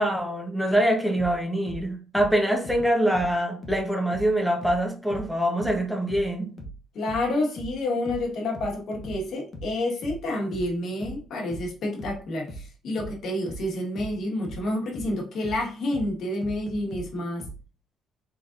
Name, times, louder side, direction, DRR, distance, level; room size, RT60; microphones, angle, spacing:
voice 1, 0.0-6.5, equal, ahead, 1 dB, 1.0 m, -24 dB
sound 1, 1.2-4.4 4.6-17.6, right 1 dB, 40° left, 0.9 m, -40 dB
voice 2, 6.9-17.5, left 1 dB, 65° left, 0 dB, 1.4 m, -29 dB
3.8 x 3.7 x 2.6 m, 0.38 s
cardioid pair, 115°, 0 cm